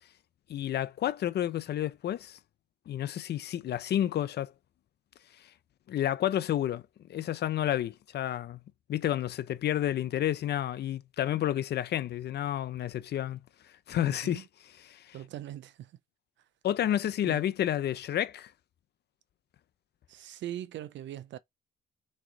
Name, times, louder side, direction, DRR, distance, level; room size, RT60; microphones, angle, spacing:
voice 1, 0.5-2.4 2.9-4.5 5.9-6.8 7.1-8.6 8.9-13.4 13.9-14.4 14.9-15.1 16.6-18.5, left 11 dB, 55° left, 0.5 m, -30 dB
voice 2, 14.0-14.5 15.1-15.9 17.2-17.5 20.1-21.4, right 12 dB, 65° right, 0.4 m, -41 dB
3.4 x 3.3 x 3.8 m
cardioid pair, 90°, 20 cm